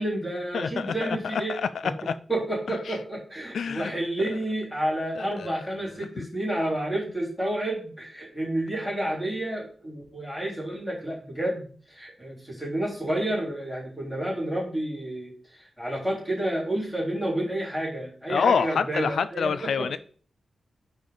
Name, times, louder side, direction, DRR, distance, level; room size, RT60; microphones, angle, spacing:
voice 1, 0.0-19.9, right 1 dB, 5° left, -6 dB, 3.6 m, -30 dB
voice 2, 0.5-2.1 2.9-3.0 3.5-3.9 5.2-5.6 6.2-6.3 18.3-20.0, left 6 dB, 75° left, 13 dB, 0.3 m, -27 dB
9.9 x 3.5 x 3.8 m, 0.43 s
wide cardioid pair, 165°, 0 cm